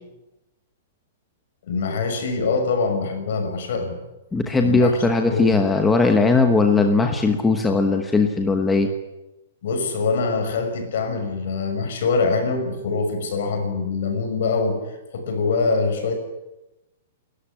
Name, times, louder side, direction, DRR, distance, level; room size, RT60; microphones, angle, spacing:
voice 1, 1.7-4.0 4.6-5.0 5.2-5.6 9.6-14.8 15.1-16.1, left 4 dB, 55° left, 6 dB, 6.0 m, -24 dB
voice 2, 4.3-8.9, left 3 dB, 5° left, 4 dB, 1.1 m, -19 dB
29.5 x 13.5 x 10.0 m, 0.97 s
hypercardioid pair, 180°, 0 cm